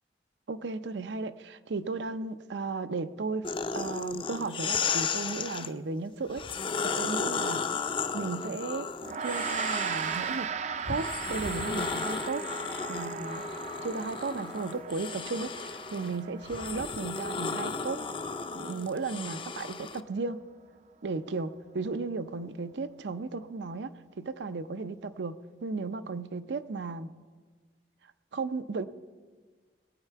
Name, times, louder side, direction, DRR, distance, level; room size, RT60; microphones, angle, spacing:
voice 1, 0.5-3.5 3.7-6.5 6.8-7.6 8.1-8.9 9.2-10.5 10.9-12.5 12.9-13.5 13.8-18.0 18.5-20.4 21.0-27.1 28.3-28.9, right 3 dB, 85° right, 12 dB, 0.6 m, -35 dB
sound 1, 3.4-5.7 6.3-10.4 10.9-20.0, left 5 dB, 30° left, 0.4 m, -34 dB
Gong, 9.0-18.6, right 6 dB, 40° right, 0.4 m, -37 dB
20.0 x 9.0 x 4.6 m, 1.5 s
head